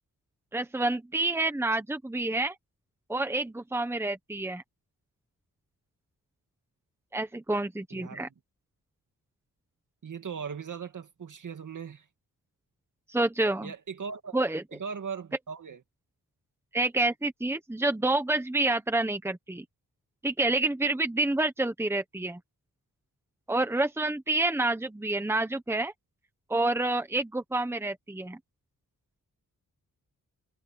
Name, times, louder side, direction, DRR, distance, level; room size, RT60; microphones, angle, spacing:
voice 1, 0.5-2.6 3.1-4.6 7.1-8.3 13.1-13.7 14.3-14.6 16.7-19.6 20.2-22.4 23.5-25.9 26.5-28.4, right 2 dB, 5° right, 1.2 m, -28 dB
voice 2, 7.9-8.3 10.0-12.1 13.6-14.4 14.7-15.8, right 6 dB, 60° right, 2.5 m, -39 dB
wide cardioid pair, 175°, 35 cm